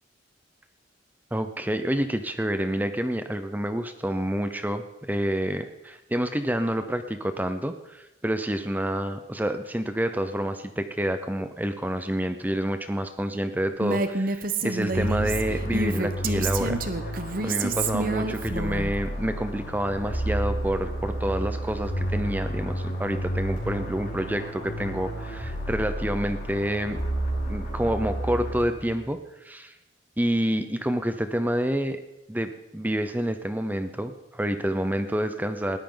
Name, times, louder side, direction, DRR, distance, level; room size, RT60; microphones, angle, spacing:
voice 1, 1.3-17.1 17.4-27.0 27.5-29.7 30.2-32.0 32.3-35.8, right 1 dB, 10° right, 9 dB, 0.7 m, -28 dB
Female speech woman speaking, 13.8-18.9, right 3 dB, 45° right, 1.0 m, -28 dB
sound 1, 14.9-29.0, right 1 dB, 50° left, 7.3 m, -31 dB
19.5 x 14.0 x 3.9 m, 0.92 s
head